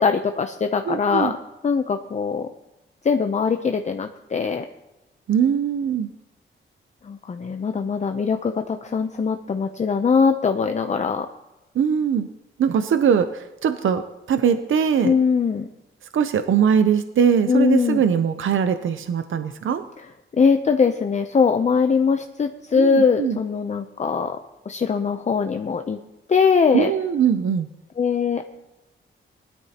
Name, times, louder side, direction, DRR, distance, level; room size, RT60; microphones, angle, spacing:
voice 1, 0.0-1.4 1.6-2.5 3.0-4.7 7.0-11.3 15.0-15.7 17.5-18.0 20.3-24.4 24.7-26.0 26.3-26.9 28.0-28.5, left 5 dB, 35° left, 6 dB, 0.6 m, -21 dB
voice 2, 0.9-1.3 5.3-6.1 11.7-12.3 12.6-14.0 14.3-15.1 16.1-19.8 22.8-23.4 26.7-27.7, right 7 dB, 70° right, 9 dB, 0.6 m, -21 dB
20.0 x 12.5 x 2.9 m, 0.97 s
wide cardioid pair, 125°, 21 cm